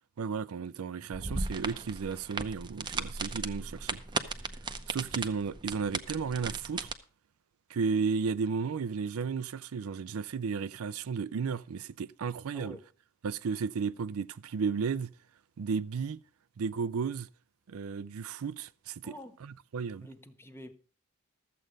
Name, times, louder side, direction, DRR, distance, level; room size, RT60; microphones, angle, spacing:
voice 1, 0.2-4.0 4.9-6.9 7.7-12.8 13.2-15.1 15.6-16.2 16.6-17.3 17.7-19.1 19.4-20.1, right 5 dB, 80° right, 0.4 m, -33 dB
sound 1, 1.1-6.9, right 3 dB, 20° right, 0.6 m, -36 dB
voice 2, 12.5-12.9 19.0-19.4 20.0-20.7, equal, 10° left, 0.9 m, -47 dB
13.0 x 7.7 x 5.2 m
head